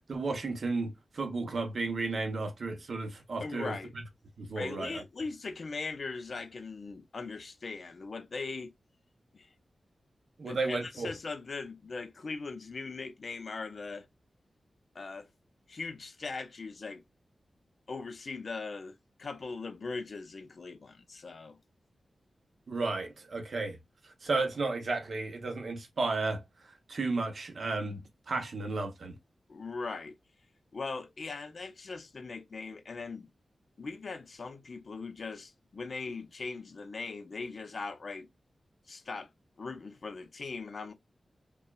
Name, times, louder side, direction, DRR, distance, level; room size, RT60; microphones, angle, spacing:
voice 1, 0.1-3.7 4.4-5.0 10.4-11.1 22.7-23.8 24.2-26.4 26.9-29.1, right 3 dB, 55° right, 1.0 m, -33 dB
voice 2, 3.4-3.9 4.5-8.7 9.3-9.5 10.4-14.1 14.9-15.3 15.7-17.0 17.9-21.6 29.5-30.2 30.7-33.3 33.8-38.3 38.9-39.3 39.6-40.9, left 4 dB, 50° left, 0.6 m, -40 dB
5.4 x 2.3 x 2.4 m
wide cardioid pair, 155°, 0 cm